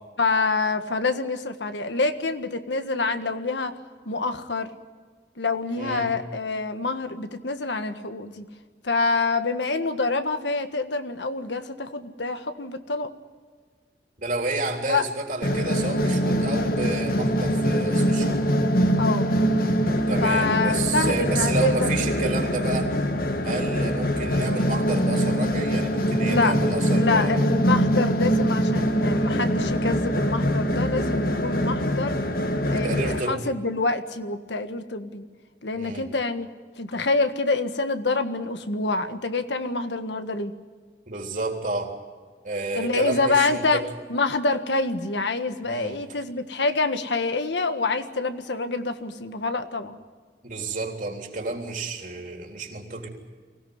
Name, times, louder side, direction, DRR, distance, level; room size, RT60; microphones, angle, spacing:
voice 1, 0.2-3.8 4.0-4.7 5.4-8.4 8.8-13.1 14.9-15.0 19.0-19.3 20.2-22.3 26.2-26.5 26.9-32.2 32.7-35.2 35.6-36.5 36.8-40.5 42.7-43.8 44.1-50.0, left 3 dB, 90° left, 8 dB, 1.6 m, -26 dB
voice 2, 5.8-6.1 14.2-18.4 20.1-22.9 23.4-27.4 32.7-33.4 35.7-36.1 41.1-42.0 42.4-43.8 45.6-46.0 50.4-53.1, right 3 dB, 50° right, 2 dB, 3.5 m, -30 dB
sound 1, 15.4-33.2, equal, 55° left, 1.8 m, -23 dB
24.0 x 17.0 x 9.6 m, 1.5 s
head